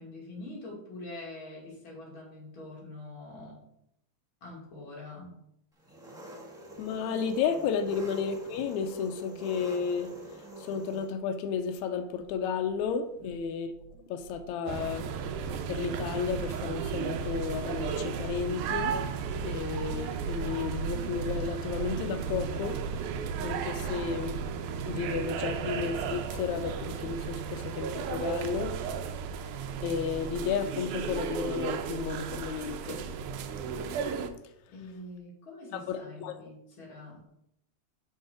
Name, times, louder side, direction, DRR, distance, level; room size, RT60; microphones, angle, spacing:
voice 1, 0.0-3.7 4.4-5.4 13.2-13.5 34.7-37.3, left 2 dB, 45° left, 2.9 m, -45 dB
Engine, 5.8-11.1, right 1 dB, 5° right, 0.4 m, -46 dB
voice 2, 6.8-13.7 14.1-15.1 15.7-19.0 19.4-24.4 24.9-28.8 29.8-33.0 35.7-36.4, left 6 dB, 80° left, 2.0 m, -33 dB
sound 1, 12.2-12.4 12.7-13.4 13.7-14.4 14.7-25.0, right 4 dB, 65° right, 2.3 m, -41 dB
sound 2, 14.7-34.3, right 6 dB, 90° right, 2.2 m, -35 dB
6.4 x 5.7 x 4.9 m
omnidirectional pair, 3.4 m